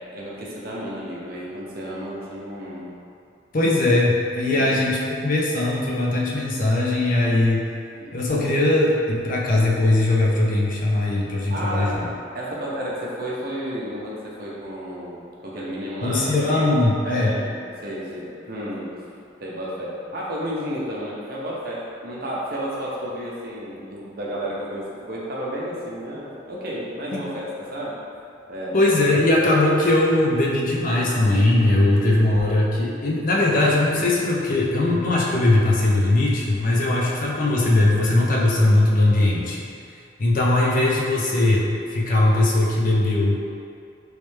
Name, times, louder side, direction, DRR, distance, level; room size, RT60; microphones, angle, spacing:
voice 1, 0.1-2.9 4.5-4.7 8.0-8.1 11.5-12.0 12.3-16.7 17.0-18.9 19.4-28.0 28.5-28.8, equal, 50° right, -6 dB, 0.7 m, -32 dB
voice 2, 3.5-7.7 8.1-12.0 16.0-17.3 28.7-39.6 40.2-43.4, left 2 dB, 45° left, -3 dB, 0.5 m, -20 dB
3.2 x 3.2 x 3.2 m, 2.4 s
head